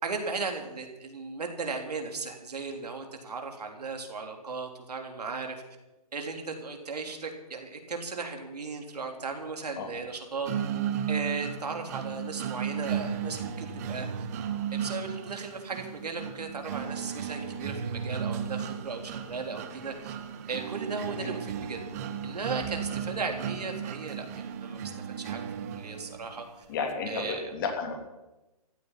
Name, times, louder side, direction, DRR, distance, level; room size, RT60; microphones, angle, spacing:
voice 1, 0.0-5.6 6.1-10.5 11.1-14.3 14.7-20.1 20.5-21.8 22.2-24.9 25.2-25.5 25.7-26.5 27.1-27.5, right 4 dB, 80° right, 4 dB, 3.7 m, -36 dB
sound 1, 10.5-26.4, right 8 dB, 25° right, 1.0 m, -35 dB
voice 2, 26.7-27.9, left 5 dB, 30° left, 3 dB, 3.0 m, -32 dB
15.0 x 8.9 x 10.0 m, 1.0 s
hypercardioid pair, 160°, 20 cm